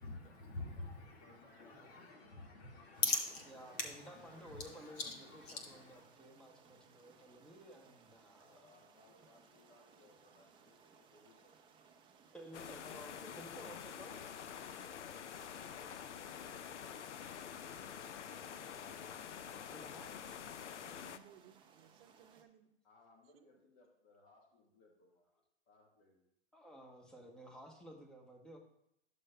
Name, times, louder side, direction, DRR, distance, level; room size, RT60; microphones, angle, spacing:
voice 1, 0.0-6.0, left 3 dB, 60° left, 1 dB, 1.9 m, -42 dB
voice 2, 1.1-3.0 3.6-3.7 8.3-11.7 18.5-21.0 22.8-25.3 25.6-26.2, left 2 dB, 35° left, 0 dB, 1.5 m, -67 dB
sound 1, 2.9-22.4, right 6 dB, 15° right, 0.5 m, -65 dB
voice 3, 3.5-5.0 5.7-8.7 12.3-14.3 19.7-20.1 26.5-28.6, equal, ahead, 1 dB, 1.0 m, -54 dB
sound 2, 12.5-21.2, left 8 dB, 85° left, 0.5 m, -47 dB
voice 4, 20.8-22.7 23.3-23.6, right 9 dB, 55° right, 6 dB, 0.8 m, -62 dB
11.0 x 6.8 x 2.2 m, 0.80 s
hypercardioid pair, 115°, 34 cm